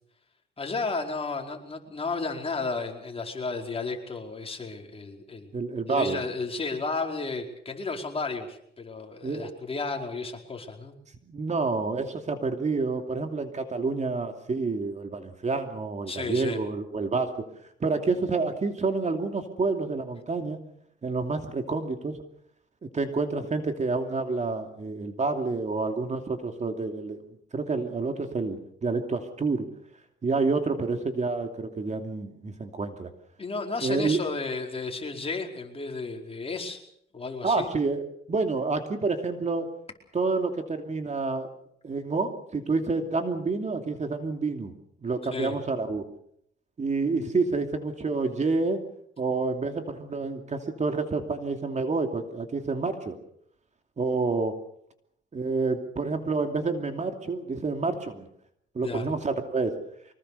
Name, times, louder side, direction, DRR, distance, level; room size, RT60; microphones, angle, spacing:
voice 1, 0.6-5.5 5.9-10.9 16.1-16.6 33.4-36.8 37.1-37.7 45.3-45.6 58.8-59.1, left 3 dB, 30° left, 2 dB, 4.8 m, -33 dB
voice 2, 5.5-6.2 9.2-9.6 11.3-17.5 17.8-20.6 21.0-22.2 22.8-27.2 27.5-29.7 30.2-33.1 33.8-34.2 37.4-39.7 40.1-41.5 41.8-44.7 45.0-46.0 46.8-48.8 49.2-53.2 54.0-54.5 55.3-58.3 58.7-59.7, right 3 dB, 35° right, 6 dB, 2.7 m, -28 dB
24.5 x 20.0 x 6.8 m, 0.71 s
cardioid pair, 90°, 20 cm